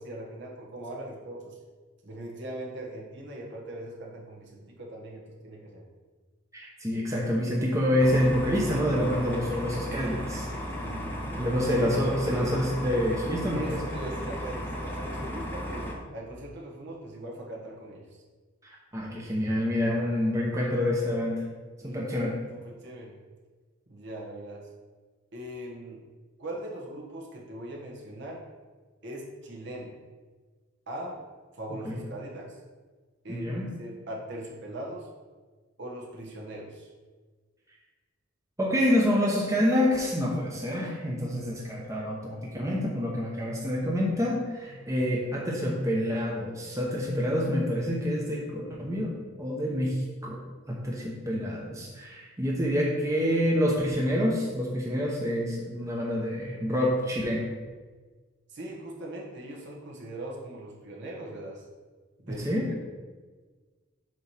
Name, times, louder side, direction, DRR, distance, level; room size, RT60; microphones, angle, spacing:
voice 1, 0.0-1.6 2.0-5.8 10.8-11.5 12.0-12.5 13.5-18.0 21.8-22.3 22.6-23.2 23.9-24.7 25.3-26.1 26.4-28.4 29.0-30.0 30.9-31.2 31.5-32.6 33.2-35.1 35.8-36.9 44.7-45.1 58.5-61.6 62.2-62.8, right 1 dB, 60° right, -2 dB, 1.4 m, -40 dB
voice 2, 6.5-10.5 11.4-13.8 18.6-21.4 21.8-22.3 31.8-32.0 33.3-33.7 38.6-49.1 49.4-50.4 50.7-57.5 62.4-62.7, equal, 15° right, -3 dB, 0.9 m, -27 dB
sound 1, 8.0-15.9, equal, 10° left, 0.9 m, -35 dB
7.6 x 3.1 x 5.7 m, 1.4 s
head